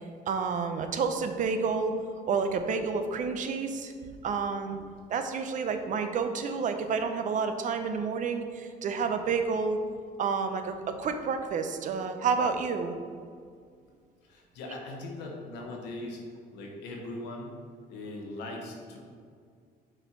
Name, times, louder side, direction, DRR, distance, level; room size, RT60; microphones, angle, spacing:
voice 1, 0.3-2.0 2.3-3.9 4.2-9.8 10.2-12.9, right 5 dB, 50° right, 7 dB, 0.6 m, -29 dB
voice 2, 14.3-16.2 16.5-17.6 17.9-19.0, left 2 dB, 90° left, 0 dB, 1.4 m, -40 dB
6.5 x 4.4 x 4.5 m, 2.1 s
cardioid pair, 110°, 17 cm